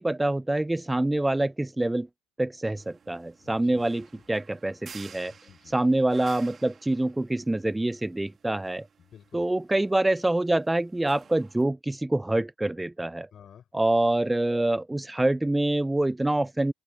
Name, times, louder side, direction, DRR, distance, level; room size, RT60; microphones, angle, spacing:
voice 1, 0.0-2.1 2.4-5.3 5.7-8.9 9.3-13.3 13.7-16.7, right 1 dB, 10° right, 0.4 m, -26 dB
sound 1, 2.8-11.6, right 6 dB, 35° right, 2.5 m, -53 dB
voice 2, 3.4-4.2 5.3-5.9 9.0-9.5 13.3-13.7, left 8 dB, 45° left, 4.9 m, -52 dB
open air
supercardioid pair, 90°, 0 cm